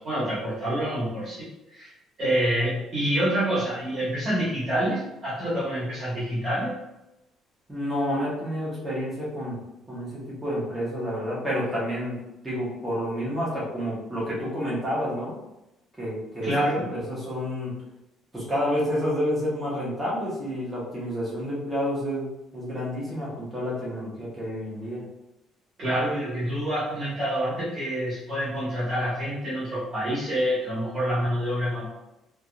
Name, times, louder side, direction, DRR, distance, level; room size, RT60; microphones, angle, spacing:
voice 1, 0.0-1.4 1.7-1.9 2.2-6.7 16.4-16.8 25.8-31.9, equal, 25° right, -11 dB, 1.4 m, -27 dB
voice 2, 7.7-9.6 9.9-12.2 12.4-15.4 16.0-16.5 16.9-17.8 18.3-25.0, equal, 5° right, -8 dB, 1.1 m, -29 dB
3.5 x 2.9 x 2.4 m, 0.92 s
cardioid pair, 180°, 0 cm